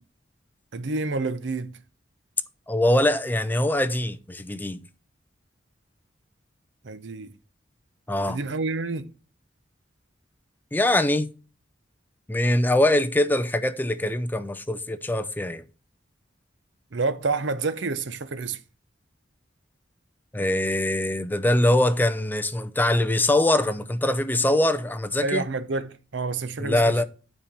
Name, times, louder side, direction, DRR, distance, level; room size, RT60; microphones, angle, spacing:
voice 1, 0.7-1.8 6.8-7.3 8.3-9.1 16.9-18.6 25.2-27.0, right 3 dB, 75° right, 0.7 m, -28 dB
voice 2, 2.7-4.8 8.1-8.4 10.7-11.3 12.3-15.6 20.3-25.4 26.6-27.0, left 1 dB, 10° left, 0.5 m, -23 dB
9.0 x 4.3 x 6.8 m
head